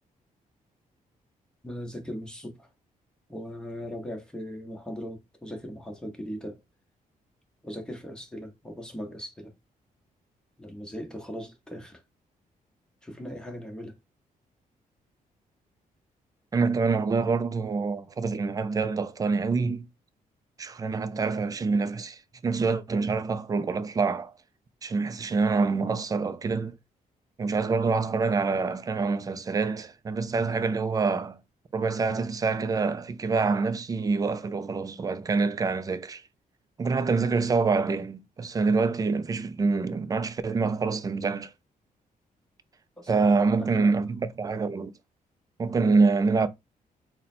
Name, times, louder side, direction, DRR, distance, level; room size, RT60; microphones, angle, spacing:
voice 1, 1.6-2.7 3.3-6.6 7.6-9.5 10.6-12.0 13.0-14.0 43.0-43.9, equal, 5° left, 1.0 m, -39 dB
voice 2, 16.5-19.9 20.6-24.3 24.8-26.8 27.4-31.4 31.7-36.2 36.8-41.5 43.1-44.9 45.6-46.5, right 4 dB, 25° right, 0.4 m, -26 dB
3.8 x 2.2 x 4.2 m
cardioid pair, 140°, 15 cm